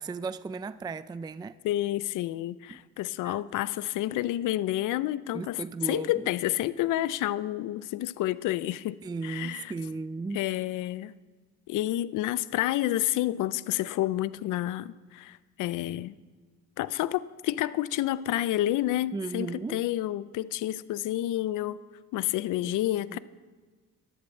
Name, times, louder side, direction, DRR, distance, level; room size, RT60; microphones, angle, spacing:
voice 1, 0.0-1.6 2.7-2.8 3.2-3.4 5.3-6.1 9.0-10.4 19.1-19.8 22.6-22.8 23.1-23.2, right 4 dB, 15° right, 0.4 m, -35 dB
voice 2, 1.6-9.7 10.3-11.1 11.7-16.2 16.8-21.8 22.1-23.2, left 14 dB, 85° left, 0.5 m, -29 dB
12.0 x 12.0 x 7.4 m
cardioid pair, 90°, 30 cm